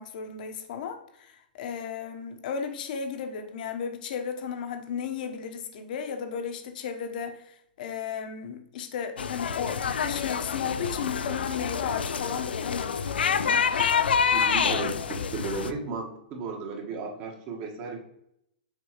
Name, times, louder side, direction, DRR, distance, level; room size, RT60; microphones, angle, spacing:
voice 1, 0.0-13.9 14.6-15.1, left 7 dB, 55° left, 6 dB, 1.0 m, -35 dB
sound 1, 9.2-15.7, left 6 dB, 85° left, 0.4 m, -27 dB
voice 2, 14.3-14.9 15.3-18.0, right 4 dB, 40° right, 1 dB, 1.5 m, -34 dB
6.7 x 4.6 x 3.0 m, 0.76 s
hypercardioid pair, 130°, 5 cm